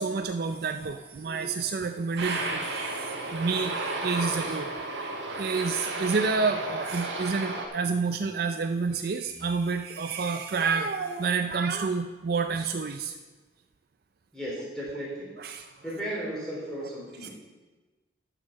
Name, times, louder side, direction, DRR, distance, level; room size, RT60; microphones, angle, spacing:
voice 1, 0.0-4.8 5.3-13.2 15.4-15.7 17.2-17.3, right 4 dB, 50° right, 7 dB, 0.4 m, -29 dB
Aircraft, 2.2-7.7, right 2 dB, 75° right, 1.6 m, -33 dB
voice 2, 14.3-15.6 15.8-17.3, right 1 dB, 5° left, -6 dB, 3.4 m, -35 dB
9.6 x 6.6 x 6.2 m, 1.2 s
head